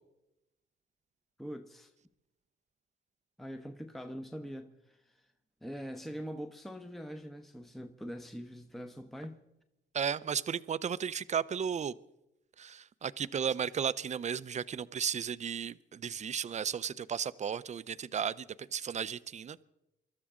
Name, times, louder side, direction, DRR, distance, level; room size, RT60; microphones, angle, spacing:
voice 1, 1.4-1.9 3.4-5.3 5.6-9.4, equal, ahead, 0.9 m, -43 dB
voice 2, 9.9-11.9 12.6-19.6, right 7 dB, 35° right, 0.6 m, -34 dB
24.5 x 12.5 x 3.7 m
cardioid pair, 90°, 20 cm